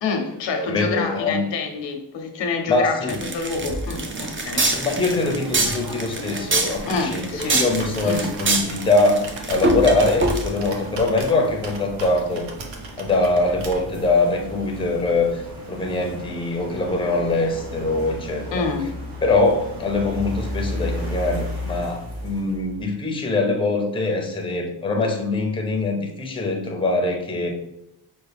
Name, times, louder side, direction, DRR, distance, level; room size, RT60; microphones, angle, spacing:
voice 1, 0.0-4.7 6.9-7.6 8.0-8.3 18.5-18.9, left 4 dB, 80° left, 0.8 m, -27 dB
voice 2, 0.6-1.4 2.7-3.2 4.7-12.5 13.0-18.7 19.2-27.5, left 2 dB, 10° left, 0.6 m, -23 dB
sound 1, 3.1-10.7, right 2 dB, 30° right, 0.5 m, -24 dB
sound 2, 3.9-23.0, equal, 55° right, 1.1 m, -35 dB
Computer keyboard, 6.7-14.1, right 2 dB, 85° right, 0.9 m, -38 dB
5.6 x 2.2 x 3.4 m
cardioid pair, 105°, 43 cm